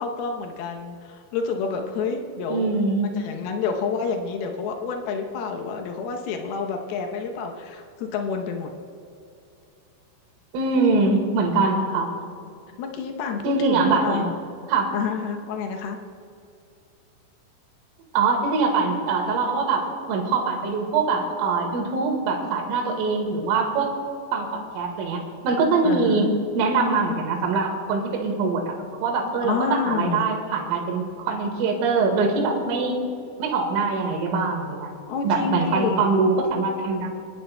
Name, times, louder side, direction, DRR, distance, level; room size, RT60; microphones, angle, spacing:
voice 1, 0.0-2.7 3.2-8.7 10.8-11.2 12.8-14.3 14.9-16.0 25.8-26.3 29.4-30.2 35.1-36.0, left 5 dB, 80° left, 3 dB, 2.2 m, -29 dB
voice 2, 2.5-3.1 10.5-12.1 13.4-14.3 14.7-14.9 18.1-23.9 24.3-28.8 29.0-33.0 33.4-34.9 35.2-37.1, right 4 dB, 80° right, 1 dB, 4.4 m, -23 dB
29.0 x 11.0 x 2.3 m, 2.5 s
omnidirectional pair, 5.8 m